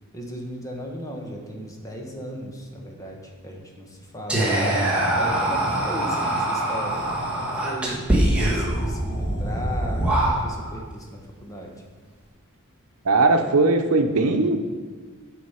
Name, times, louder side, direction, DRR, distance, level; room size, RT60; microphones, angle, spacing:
voice 1, 0.1-4.5 5.2-7.1 7.3-8.0 8.4-11.7, equal, 15° left, 0 dB, 1.3 m, -36 dB
Whispering, 4.3-10.8, right 1 dB, 5° right, 1.8 m, -23 dB
voice 2, 13.0-14.6, right 3 dB, 85° right, 6 dB, 0.8 m, -19 dB
9.5 x 5.2 x 5.8 m, 1.4 s
head